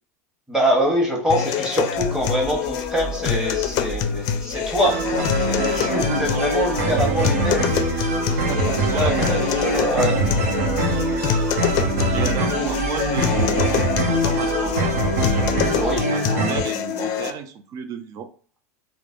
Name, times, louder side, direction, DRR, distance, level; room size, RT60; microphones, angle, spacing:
voice 1, 0.5-7.9 8.9-10.1 15.8-16.1, equal, 5° right, -1 dB, 1.2 m, -24 dB
sound 1, 1.3-17.3, left 8 dB, 50° left, 0.4 m, -25 dB
sound 2, 1.9-16.0, right 5 dB, 60° right, 1.1 m, -35 dB
sound 3, 4.8-16.6, right 2 dB, 80° right, 0.7 m, -23 dB
voice 2, 8.3-9.9 12.1-15.0 16.1-18.3, right 7 dB, 40° right, 9 dB, 0.5 m, -33 dB
3.2 x 2.1 x 2.4 m, 0.43 s
hypercardioid pair, 100°, 9 cm